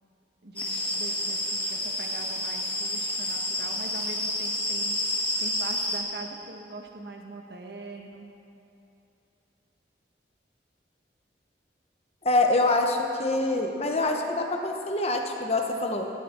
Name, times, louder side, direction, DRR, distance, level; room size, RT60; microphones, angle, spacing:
voice 1, 0.4-8.3, right 2 dB, 65° right, 3 dB, 1.5 m, -42 dB
sound 1, 0.6-6.0, left 1 dB, 10° left, 1.6 m, -29 dB
voice 2, 12.2-16.1, left 2 dB, 35° left, 3 dB, 1.1 m, -25 dB
18.5 x 13.0 x 4.5 m, 2.8 s
head